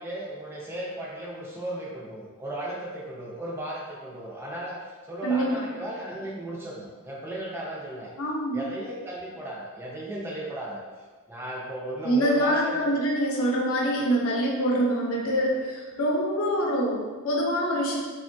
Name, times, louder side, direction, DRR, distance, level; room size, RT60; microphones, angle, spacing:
voice 1, 0.0-8.1 8.5-10.8 11.3-12.9, right 1 dB, 10° right, -5 dB, 0.5 m, -36 dB
voice 2, 5.2-5.6 8.2-8.6 12.0-18.0, equal, 80° left, -2 dB, 0.6 m, -25 dB
3.5 x 2.2 x 2.6 m, 1.4 s
head